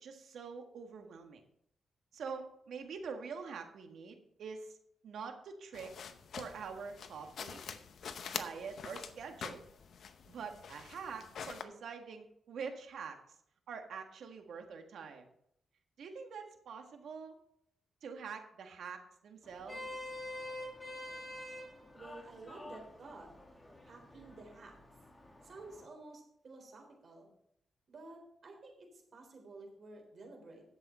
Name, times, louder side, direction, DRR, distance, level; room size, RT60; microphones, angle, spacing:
voice 1, 0.0-1.4 2.1-4.8 5.0-5.9 6.4-7.6 8.3-9.6 10.2-13.2 13.7-15.3 16.0-17.3 18.0-19.9, right 5 dB, 80° right, 5 dB, 1.6 m, -45 dB
sound 1, 5.7-11.6, left 6 dB, 70° left, 0.8 m, -46 dB
Vehicle horn car horn honking, 19.4-25.8, left 1 dB, 20° left, 2.3 m, -47 dB
voice 2, 21.9-23.3 23.9-24.8 25.4-27.3 27.9-30.6, right 2 dB, 50° right, 2 dB, 3.9 m, -52 dB
11.0 x 8.0 x 4.3 m, 0.72 s
cardioid pair, 100°, 0 cm